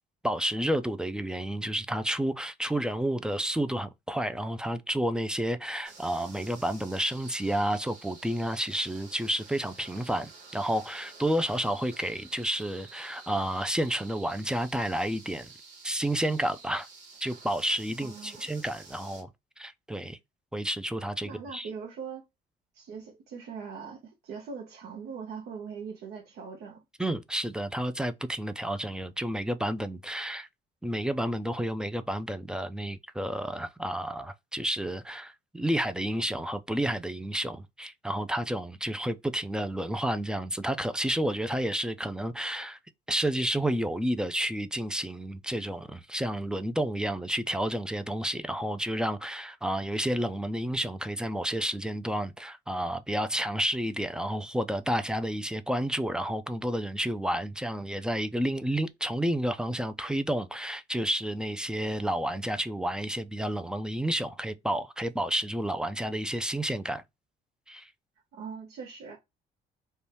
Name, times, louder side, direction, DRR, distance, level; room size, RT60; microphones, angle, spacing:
voice 1, 0.2-15.5 15.8-16.9 17.2-19.3 19.6-20.2 20.5-21.7 27.0-30.5 30.8-42.8 43.1-67.0 67.7-67.9, right 1 dB, 5° right, 0.3 m, -30 dB
sound 1, 5.8-19.2, right 4 dB, 85° right, 1.1 m, -50 dB
voice 2, 18.0-18.4 21.2-22.2 22.7-26.8 68.3-69.2, right 6 dB, 70° right, 0.7 m, -41 dB
2.6 x 2.2 x 3.2 m
cardioid pair, 110°, 17 cm